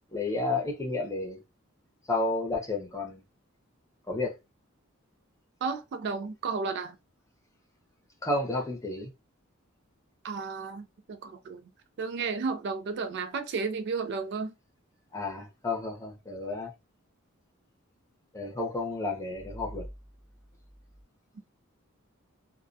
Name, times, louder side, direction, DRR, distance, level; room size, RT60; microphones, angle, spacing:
voice 1, 0.1-1.4 2.1-3.2 4.1-4.3 8.2-9.1 15.1-16.7 18.3-19.8, left 2 dB, 15° left, 0.7 m, -31 dB
voice 2, 5.6-7.0 10.2-11.6 12.0-14.5, right 4 dB, 55° right, 0.3 m, -33 dB
2.3 x 2.1 x 2.5 m
head